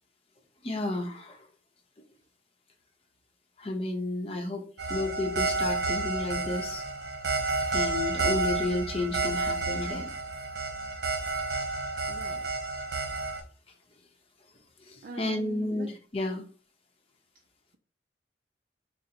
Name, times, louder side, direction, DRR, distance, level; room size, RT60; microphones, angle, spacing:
voice 1, 0.6-1.4 3.6-4.6 4.9-6.8 7.7-10.1 14.9-16.4, left 2 dB, 35° left, 3 dB, 0.7 m, -32 dB
sound 1, 4.8-13.4, right 3 dB, 80° right, 1.0 m, -30 dB
voice 2, 12.1-12.5 15.0-15.9, right 4 dB, 55° right, 2 dB, 0.4 m, -43 dB
3.8 x 2.0 x 4.2 m, 0.39 s
head